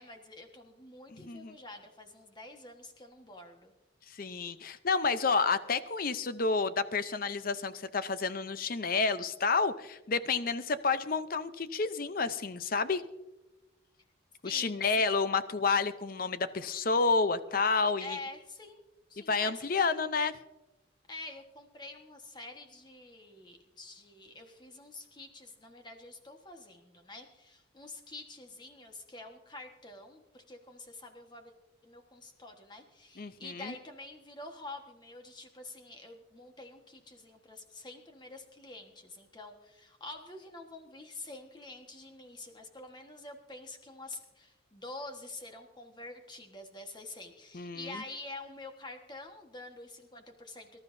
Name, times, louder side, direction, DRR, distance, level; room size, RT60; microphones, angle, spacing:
voice 1, 0.0-3.7 14.4-15.2 18.0-18.8 19.1-20.0 21.1-31.5 31.8-50.8, left 2 dB, 20° left, 4 dB, 1.4 m, -47 dB
voice 2, 1.1-1.6 4.1-13.0 14.4-18.2 19.3-20.3 33.2-33.7 47.5-48.0, left 4 dB, 45° left, 13 dB, 0.6 m, -30 dB
24.0 x 12.5 x 2.7 m, 1.0 s
head